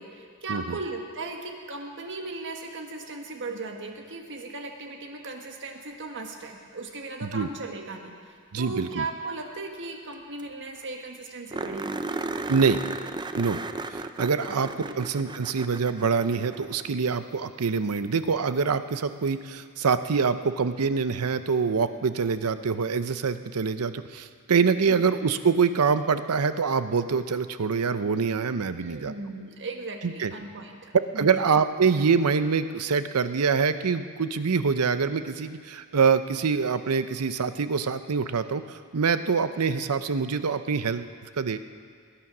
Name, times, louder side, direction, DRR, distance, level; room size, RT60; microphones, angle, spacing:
voice 1, 0.0-12.0 14.5-14.6 14.8-15.0 24.9-25.0 28.8-31.3, right 3 dB, 55° right, 3 dB, 1.5 m, -37 dB
voice 2, 8.5-9.1 12.5-12.8 13.3-13.6 13.9-14.7 14.9-29.1 30.0-30.3 30.9-41.1 41.4-41.6, right 5 dB, 85° right, 11 dB, 0.7 m, -25 dB
sound 1, 10.1-10.2 10.4-10.5 10.8-10.9 11.5-16.9 19.3-19.4 22.2-22.3, right 3 dB, 20° right, 0.4 m, -35 dB
18.5 x 10.0 x 6.0 m, 2.1 s
head